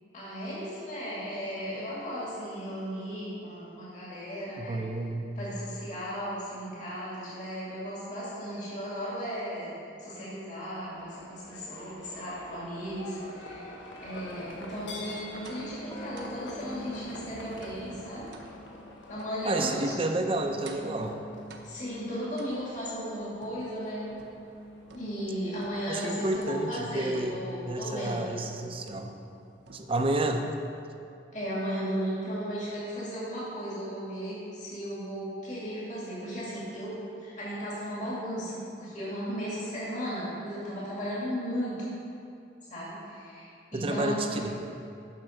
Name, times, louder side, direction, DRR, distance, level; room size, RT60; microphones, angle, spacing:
voice 1, 0.1-4.8 5.4-13.7 14.0-18.3 19.1-19.9 21.6-24.1 24.9-28.3 31.3-41.9 42.7-44.4, equal, 40° left, -8 dB, 2.3 m, -35 dB
voice 2, 4.6-5.3 19.4-21.2 25.9-29.1 29.7-30.4 43.7-44.6, right 2 dB, 30° right, 5 dB, 0.6 m, -30 dB
Livestock farm animals working animals, 10.8-27.3, left 1 dB, 85° left, 1.2 m, -47 dB
sound 1, 14.4-14.5 15.9-23.3 23.6-27.3, right 1 dB, 20° left, 0.3 m, -48 dB
sound 2, 15.4-15.7 16.2-16.4 16.9-17.2 17.6-17.9 18.3-18.5 19.2-19.4 19.9-20.2 20.6-21.0 21.5-21.9 22.4-22.9 23.4-24.5 24.9-25.3 25.6-26.0 26.3-26.6 27.1-27.5 28.1-28.4 28.9-29.4 29.7-30.1, right 3 dB, 65° right, 0.8 m, -51 dB
7.6 x 5.9 x 6.5 m, 2.6 s
head